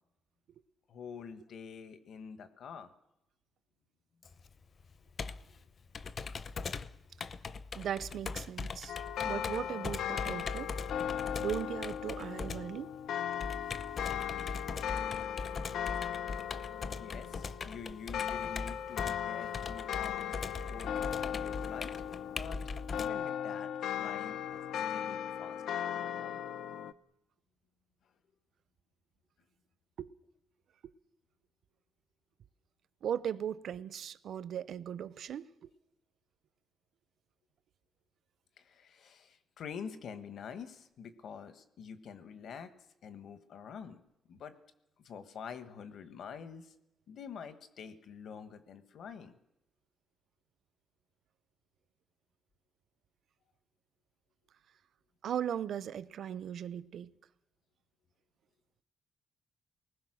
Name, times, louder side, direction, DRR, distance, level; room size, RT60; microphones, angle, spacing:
voice 1, 0.9-2.9 7.4-7.5 17.0-21.9 22.2-22.6 22.9-23.7 24.0-24.6 24.9-26.4 38.6-42.7 43.0-44.0 44.3-44.5 45.0-46.7 47.1-49.3, left 6 dB, 65° left, 1.6 m, -47 dB
Computer keyboard, 4.2-23.1, left 4 dB, 40° left, 0.7 m, -41 dB
voice 2, 7.8-9.0 9.2-10.7 11.4-12.9 30.0-30.1 33.0-35.7 55.2-57.1, right 9 dB, 65° right, 0.8 m, -38 dB
sound 1, 8.9-26.9, left 9 dB, 85° left, 0.8 m, -37 dB
29.0 x 20.0 x 6.3 m
wide cardioid pair, 155°, 0 cm